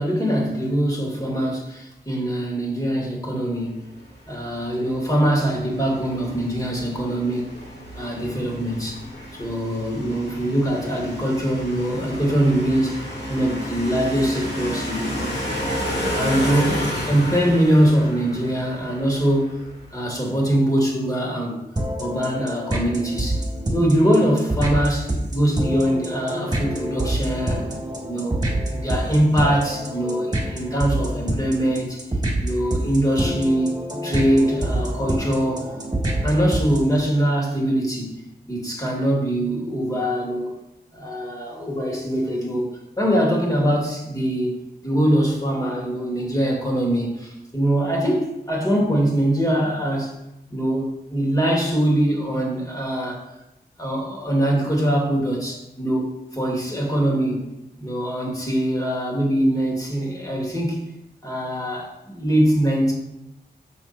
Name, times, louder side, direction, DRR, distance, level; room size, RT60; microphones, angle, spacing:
voice 1, 0.0-3.8 4.3-7.5 8.0-9.0 9.4-13.0 13.3-15.5 16.1-19.5 19.9-21.6 22.0-23.4 23.7-27.7 28.1-28.4 28.7-32.0 32.4-33.7 34.0-35.7 36.2-38.1 38.5-40.6 40.9-42.7 43.0-44.6 44.8-50.1 50.5-53.2 53.8-57.4 57.8-60.8 61.2-62.9, right 1 dB, 20° left, -2 dB, 2.6 m, -22 dB
sound 1, 3.9-20.1, left 1 dB, 80° left, 2.9 m, -31 dB
sound 2, 21.8-37.0, right 1 dB, 25° right, 2.4 m, -27 dB
6.9 x 6.2 x 4.4 m, 0.88 s
wide cardioid pair, 65°, 17 cm